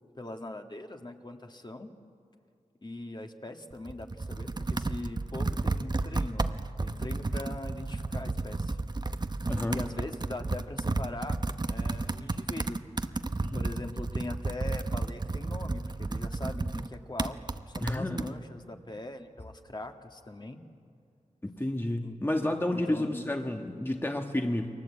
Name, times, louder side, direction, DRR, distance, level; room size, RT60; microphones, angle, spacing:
voice 1, 0.2-1.9 2.8-8.8 9.7-11.4 11.7-12.8 13.5-17.4 17.7-20.6 22.0-22.2 22.7-23.2 24.6-24.7, left 2 dB, 35° left, 4 dB, 1.9 m, -41 dB
Computer keyboard, 3.7-18.3, right 2 dB, 30° right, 0.9 m, -32 dB
voice 2, 9.5-9.8 13.4-13.6 17.8-18.3 21.4-24.7, left 1 dB, 15° left, 3 dB, 1.5 m, -30 dB
30.0 x 22.5 x 8.5 m, 2.3 s
wide cardioid pair, 75°, 13 cm